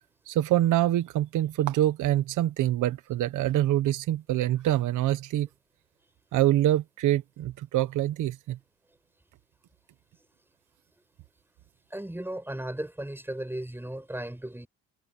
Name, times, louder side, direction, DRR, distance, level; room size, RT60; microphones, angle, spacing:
voice 1, 0.3-5.5 6.3-8.6, right 13 dB, 85° right, 1.4 m, -25 dB
voice 2, 11.9-14.7, right 1 dB, 5° right, 7.9 m, -35 dB
cardioid pair, 90°, 30 cm